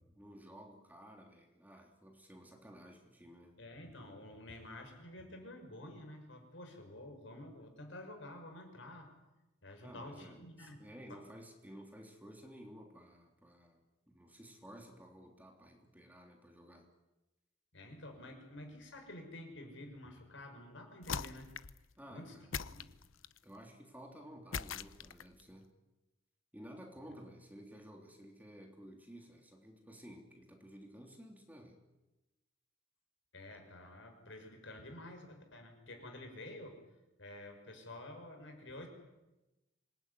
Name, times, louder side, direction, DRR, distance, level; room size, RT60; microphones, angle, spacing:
voice 1, 0.1-3.5 9.8-16.9 22.0-22.5 23.4-25.7 26.5-31.8, equal, 10° right, 2 dB, 3.3 m, -54 dB
voice 2, 3.6-9.1 9.6-11.2 17.7-21.5 22.1-22.4 22.6-22.9 33.3-36.8 37.2-38.9, left 1 dB, 70° left, 4 dB, 6.2 m, -50 dB
sound 1, 21.0-21.8 22.5-23.4 24.5-25.4, left 6 dB, 85° left, 0.8 m, -41 dB
26.5 x 20.0 x 9.9 m, 1.0 s
head